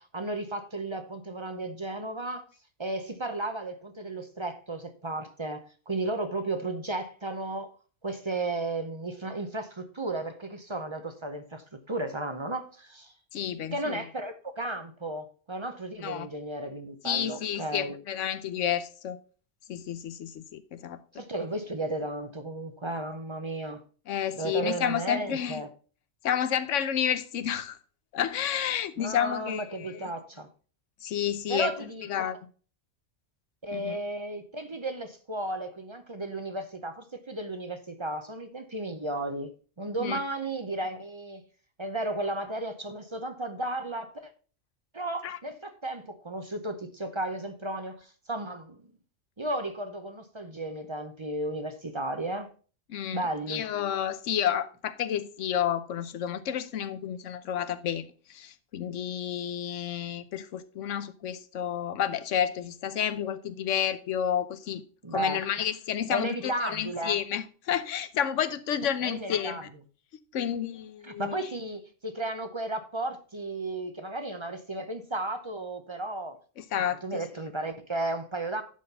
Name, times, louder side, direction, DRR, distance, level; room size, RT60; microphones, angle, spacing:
voice 1, 0.0-2.5 2.8-13.1 13.7-17.9 21.1-23.8 24.4-25.7 29.0-30.5 31.5-32.3 33.6-41.4 41.8-44.3 44.9-48.8 49.4-52.5 53.1-53.7 65.0-65.5 66.1-67.2 69.0-69.6 71.0-76.4 76.8-78.6, right 2 dB, 30° right, 0.7 m, -34 dB
voice 2, 13.3-14.0 16.0-16.3 17.0-19.2 19.7-21.0 24.1-25.6 26.2-27.8 28.1-30.1 31.0-31.7 32.1-32.4 33.7-34.0 40.0-40.2 45.2-45.4 52.9-64.8 65.1-69.6 70.3-71.5 76.6-77.2, left 9 dB, 85° left, 1.1 m, -30 dB
11.0 x 4.2 x 5.4 m
omnidirectional pair, 1.2 m